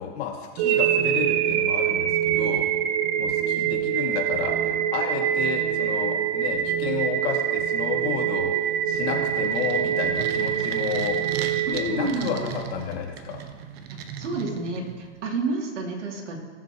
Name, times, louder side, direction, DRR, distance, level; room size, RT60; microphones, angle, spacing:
voice 1, 0.0-2.7 3.2-8.5 8.9-11.4 11.7-13.4, left 7 dB, 60° left, 0 dB, 2.4 m, -31 dB
sound 1, 0.6-12.6, right 10 dB, 35° right, 0.6 m, -25 dB
sound 2, 8.9-15.2, right 8 dB, 55° right, 1.1 m, -37 dB
voice 2, 11.7-12.4 13.9-16.4, right 2 dB, 80° right, -2 dB, 3.0 m, -30 dB
18.0 x 7.4 x 3.0 m, 1.5 s
hypercardioid pair, 135°, 35 cm